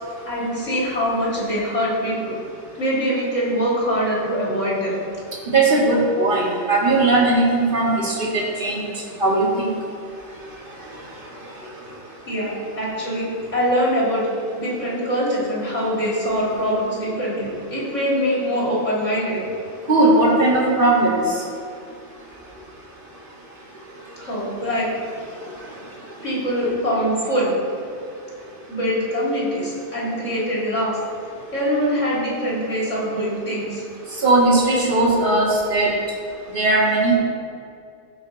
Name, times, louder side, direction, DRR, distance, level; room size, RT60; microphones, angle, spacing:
voice 1, 0.2-2.4 2.8-5.0 12.3-14.3 14.6-19.4 24.2-24.9 26.2-27.5 28.7-30.9 31.5-33.8, equal, 85° left, -6 dB, 3.5 m, -23 dB
voice 2, 5.5-8.8 9.2-9.7 19.9-21.2 34.2-35.9 36.5-37.2, right 2 dB, 45° right, -5 dB, 2.4 m, -18 dB
15.5 x 6.0 x 4.1 m, 2.4 s
omnidirectional pair, 1.3 m